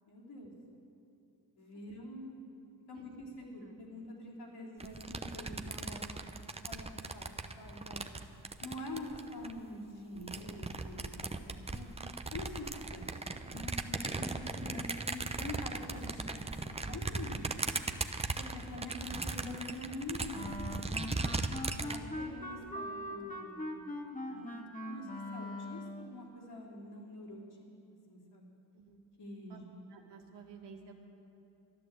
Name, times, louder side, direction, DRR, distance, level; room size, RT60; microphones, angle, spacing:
voice 1, 0.0-0.5 1.6-2.5 2.9-6.3 6.6-6.9 7.1-8.3 8.6-11.9 12.3-13.1 13.4-16.2 16.6-17.4 18.4-20.5 21.7-23.8 24.1-24.5 24.9-27.4 28.1-28.5 29.2-29.6, left 1 dB, 65° left, -4 dB, 3.8 m, -45 dB
sound 1, 4.8-9.6 10.2-22.0, right 3 dB, 15° right, 0.8 m, -38 dB
Wind instrument woodwind instrument, 20.3-26.1, left 1 dB, 20° left, 2.0 m, -41 dB
voice 2, 29.9-30.9, right 5 dB, 75° right, 2 dB, 1.9 m, -54 dB
12.5 x 11.0 x 8.2 m, 3.0 s
supercardioid pair, 60°, 42 cm